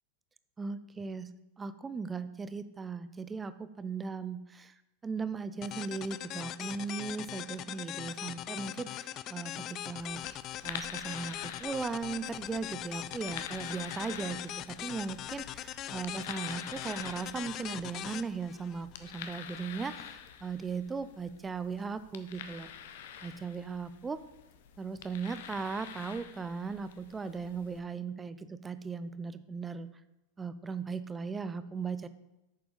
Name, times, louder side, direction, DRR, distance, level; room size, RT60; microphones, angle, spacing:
voice 1, 0.6-1.3 1.6-4.7 5.0-10.2 10.6-22.7 23.2-24.2 24.8-29.9 30.4-32.1, right 5 dB, 15° right, 13 dB, 0.5 m, -38 dB
sound 1, 5.6-19.3, left 12 dB, 35° left, 0.3 m, -41 dB
sound 2, 10.0-27.8, left 8 dB, 55° left, 0.8 m, -47 dB
8.7 x 6.9 x 5.1 m, 0.95 s
figure-of-eight pair, 90°, 0 cm